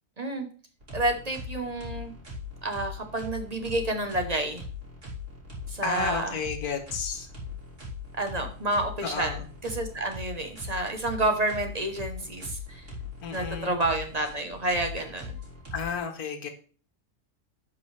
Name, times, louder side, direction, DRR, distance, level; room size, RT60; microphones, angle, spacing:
voice 1, 0.2-0.5 0.9-2.1 2.6-4.6 5.7-6.3 8.2-9.4 9.6-12.8 13.3-15.4, right 2 dB, 30° right, 5 dB, 1.0 m, -29 dB
sound 1, 0.8-16.0, left 4 dB, 50° right, 3.0 m, -40 dB
voice 2, 5.8-7.3 9.0-9.5 13.2-13.8 15.7-16.5, left 6 dB, 85° left, 6 dB, 1.6 m, -32 dB
11.0 x 5.3 x 3.3 m, 0.41 s
omnidirectional pair, 1.6 m